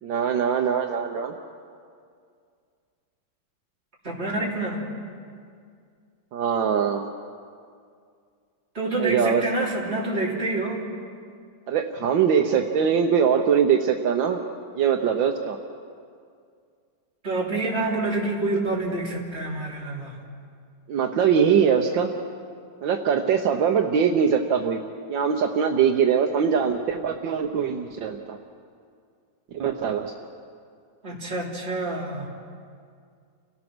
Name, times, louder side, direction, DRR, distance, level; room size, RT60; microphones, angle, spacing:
voice 1, 0.0-1.3 6.3-7.1 9.0-9.4 11.7-14.4 14.8-15.6 20.9-22.1 22.8-24.8 25.1-28.4 29.5-30.1, right 7 dB, 75° right, 3 dB, 1.7 m, -22 dB
voice 2, 4.0-4.9 8.7-10.9 17.2-20.2 31.0-32.3, right 2 dB, 30° right, -4 dB, 3.9 m, -27 dB
30.0 x 17.5 x 6.2 m, 2.2 s
omnidirectional pair, 2.1 m